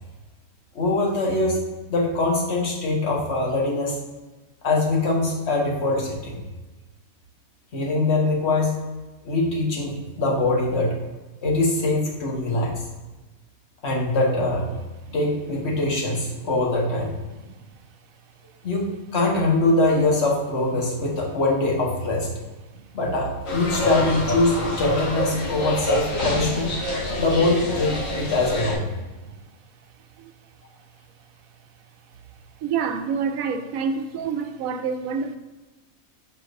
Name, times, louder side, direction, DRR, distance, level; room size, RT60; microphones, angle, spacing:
voice 1, 0.7-1.6 1.9-4.0 4.6-6.4 7.7-8.8 9.2-11.0 11.4-12.8 13.8-14.7 15.1-17.1 18.6-22.3 22.9-26.7 27.2-28.9 33.5-33.6, left 2 dB, 50° left, 1.4 m, -23 dB
sound 1, 23.5-28.7, left 1 dB, 70° left, 1.8 m, -26 dB
voice 2, 32.6-35.4, right 6 dB, 75° right, 1.0 m, -27 dB
6.6 x 5.7 x 2.6 m
omnidirectional pair, 1.5 m